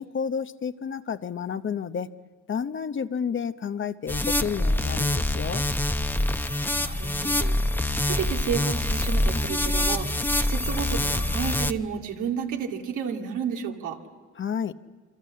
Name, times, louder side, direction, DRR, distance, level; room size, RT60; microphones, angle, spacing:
voice 1, 0.0-2.1 2.5-5.6 14.4-14.7, left 7 dB, 40° left, 12 dB, 0.8 m, -30 dB
sound 1, 4.1-11.7, left 1 dB, 5° left, 0.8 m, -25 dB
voice 2, 6.8-7.6 8.1-14.0, right 7 dB, 90° right, 2 dB, 2.3 m, -31 dB
27.0 x 25.0 x 7.6 m, 1.4 s
cardioid pair, 90°, 30 cm